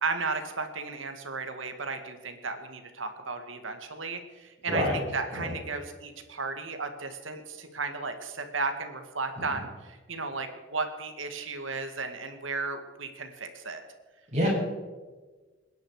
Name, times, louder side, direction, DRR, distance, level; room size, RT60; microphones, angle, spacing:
voice 1, 0.0-13.8, right 4 dB, 85° right, 7 dB, 2.0 m, -34 dB
voice 2, 4.7-5.0 5.3-5.5 14.3-14.5, equal, 35° right, -4 dB, 7.2 m, -26 dB
27.0 x 10.5 x 5.0 m, 1.3 s
head